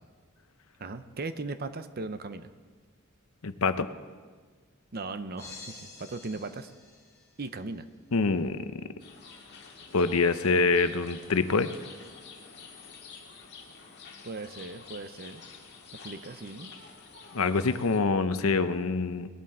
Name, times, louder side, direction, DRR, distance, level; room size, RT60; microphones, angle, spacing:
voice 1, 0.8-2.5 4.9-6.7 7.4-7.9 14.2-15.4 16.0-16.7, right 3 dB, 45° right, 11 dB, 0.7 m, -38 dB
voice 2, 3.4-3.9 8.1-8.9 9.9-11.7 17.3-19.3, left 4 dB, 75° left, 11 dB, 0.7 m, -25 dB
sound 1, 5.4-7.6, left 3 dB, 15° left, 4.5 m, -48 dB
sound 2, 9.0-18.0, left 5 dB, 50° left, 1.9 m, -49 dB
20.5 x 11.0 x 4.3 m, 1.5 s
head